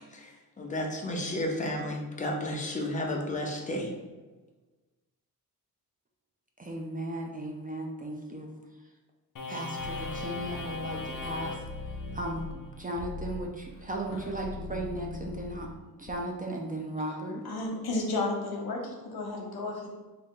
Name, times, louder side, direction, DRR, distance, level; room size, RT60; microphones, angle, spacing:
voice 1, 0.6-3.9, left 1 dB, 20° left, -1 dB, 0.7 m, -32 dB
voice 2, 6.6-8.5 9.5-11.5 12.1-12.4 12.8-15.7 16.0-17.4, right 1 dB, 25° right, 1 dB, 0.4 m, -36 dB
sound 1, 9.4-16.1, left 3 dB, 55° left, 0.7 m, -38 dB
voice 3, 17.4-19.9, left 2 dB, 80° left, 0 dB, 0.9 m, -32 dB
3.8 x 2.7 x 3.7 m, 1.2 s
wide cardioid pair, 130°, 37 cm